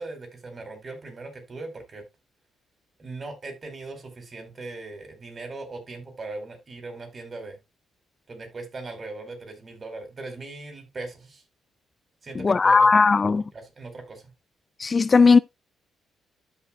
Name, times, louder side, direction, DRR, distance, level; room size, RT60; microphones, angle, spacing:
voice 1, 0.0-2.0 3.0-7.6 8.3-11.4 12.2-14.3, right 3 dB, 40° right, 4.3 m, -39 dB
voice 2, 12.4-13.4 14.8-15.4, left 4 dB, 40° left, 0.4 m, -17 dB
13.0 x 5.9 x 2.3 m
supercardioid pair, 55°, 0 cm